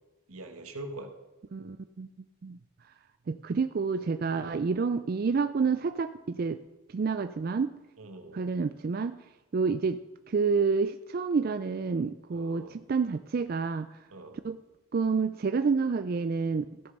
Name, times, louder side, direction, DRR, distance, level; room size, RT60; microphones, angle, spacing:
voice 1, 0.3-1.1 4.3-4.6 8.0-8.4 12.3-12.8 14.1-14.4, right 2 dB, 85° right, 5 dB, 1.5 m, -43 dB
voice 2, 1.5-2.1 2.4-2.6 3.3-6.6 6.9-7.7 8.3-9.2 9.5-10.0 10.3-14.0 14.4-14.6 14.9-16.9, right 5 dB, 45° right, 10 dB, 0.3 m, -29 dB
15.0 x 6.8 x 5.3 m, 1.1 s
head